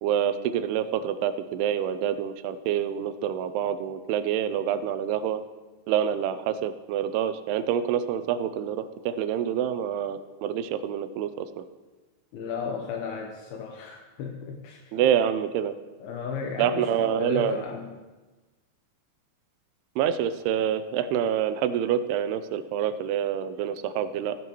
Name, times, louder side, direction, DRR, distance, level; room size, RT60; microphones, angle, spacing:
voice 1, 0.0-5.4 5.9-11.6 14.9-15.7 16.6-17.6 20.0-24.4, right 9 dB, 85° right, 12 dB, 2.6 m, -27 dB
voice 2, 12.3-15.0 16.0-17.9, left 6 dB, 80° left, 1 dB, 2.7 m, -35 dB
15.0 x 11.0 x 3.0 m, 1.2 s
omnidirectional pair, 4.6 m